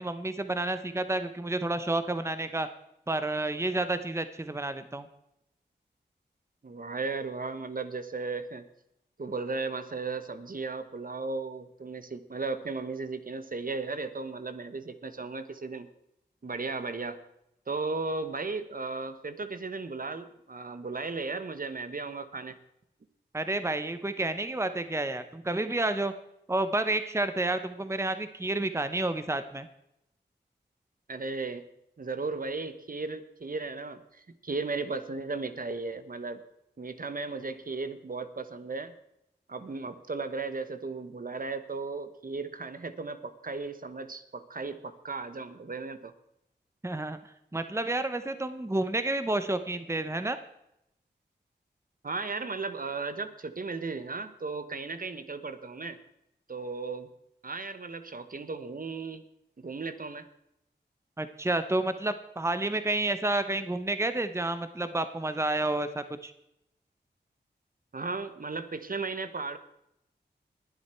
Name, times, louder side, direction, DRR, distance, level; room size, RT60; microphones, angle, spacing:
voice 1, 0.0-2.7 3.1-5.1 23.3-26.1 26.5-29.7 46.8-47.2 47.5-50.4 61.2-66.3, right 2 dB, 15° right, 11 dB, 0.9 m, -30 dB
voice 2, 6.6-8.6 9.2-15.9 16.4-17.2 17.7-22.6 31.1-31.6 32.0-36.4 36.8-38.9 39.5-46.1 52.0-56.0 56.5-57.1 57.4-59.2 59.6-60.3 67.9-69.6, right 3 dB, 50° right, 10 dB, 1.2 m, -35 dB
20.5 x 7.8 x 4.5 m, 0.81 s
cardioid pair, 45°, 19 cm